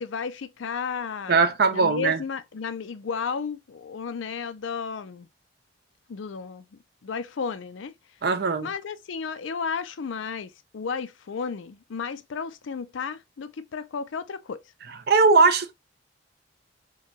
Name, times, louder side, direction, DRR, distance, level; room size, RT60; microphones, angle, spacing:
voice 1, 0.0-1.4 1.7-5.3 6.1-6.6 7.0-7.9 8.6-14.6, left 5 dB, 70° left, 0.4 m, -33 dB
voice 2, 1.3-2.2 8.2-8.7 15.1-15.7, right 4 dB, 50° right, 0.5 m, -20 dB
4.6 x 2.3 x 2.8 m
head